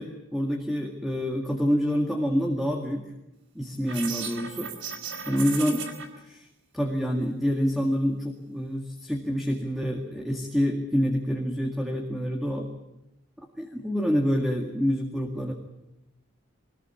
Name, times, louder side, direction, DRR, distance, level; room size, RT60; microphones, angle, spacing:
voice 1, 0.0-3.1 3.5-4.7 5.3-5.9 6.2-6.5 6.7-12.7 13.4-15.5, equal, ahead, 2 dB, 2.0 m, -27 dB
sound 1, 3.9-6.1, right 6 dB, 60° right, 4.0 m, -35 dB
22.5 x 20.5 x 8.5 m, 0.91 s
head